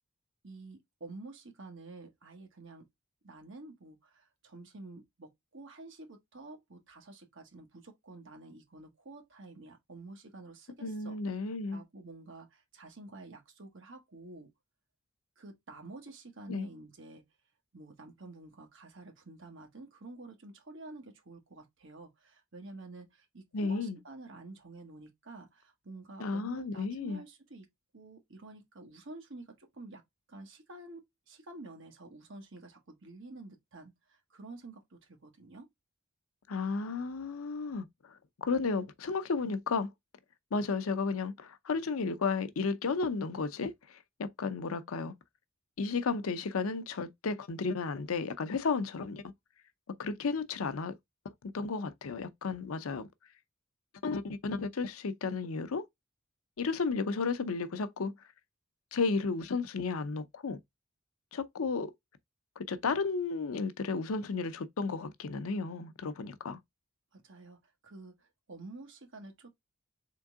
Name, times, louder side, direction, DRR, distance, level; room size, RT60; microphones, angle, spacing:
voice 1, 0.4-2.9 3.2-14.5 15.4-17.2 17.7-27.7 27.9-30.0 30.3-35.7 67.1-69.5, right 2 dB, 60° right, 1.2 m, -49 dB
voice 2, 10.8-11.8 16.5-16.7 23.5-24.0 26.2-27.2 36.5-39.9 40.5-45.1 45.8-49.2 50.0-50.9 51.2-53.1 54.0-55.9 56.6-58.1 58.9-60.6 61.3-61.9 62.6-66.6, left 4 dB, 80° left, 0.6 m, -33 dB
3.7 x 3.6 x 3.5 m
head